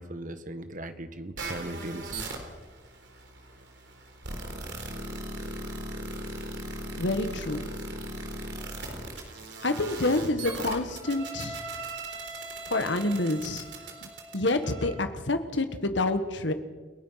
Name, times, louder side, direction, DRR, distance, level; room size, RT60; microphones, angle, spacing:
voice 1, 0.0-2.2, right 1 dB, 45° right, 9 dB, 1.6 m, -38 dB
sound 1, 1.4-14.9, right 2 dB, 65° right, 3.9 m, -38 dB
voice 2, 7.0-7.6 9.6-11.6 12.7-13.6 14.3-16.5, left 2 dB, 75° left, 8 dB, 1.6 m, -27 dB
29.5 x 17.5 x 5.9 m, 1.3 s
head